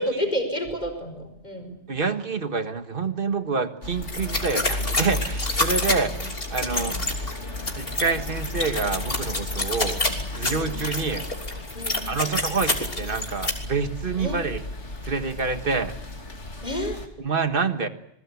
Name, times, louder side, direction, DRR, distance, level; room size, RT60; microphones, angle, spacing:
voice 1, 0.0-1.7 5.9-6.2 6.7-7.0 9.7-10.1 10.5-10.8 11.7-12.1 14.2-14.4 16.6-17.0, equal, 40° left, 5 dB, 4.9 m, -31 dB
voice 2, 1.9-6.2 6.5-7.0 7.8-10.1 10.4-11.3 12.1-14.6 15.0-15.9 17.2-17.9, right 4 dB, 50° right, 9 dB, 1.6 m, -27 dB
sound 1, 3.8-17.1, left 2 dB, 90° left, 2.9 m, -34 dB
sound 2, 4.0-13.5, left 2 dB, 55° left, 3.5 m, -28 dB
27.5 x 21.0 x 8.3 m, 0.79 s
omnidirectional pair, 1.2 m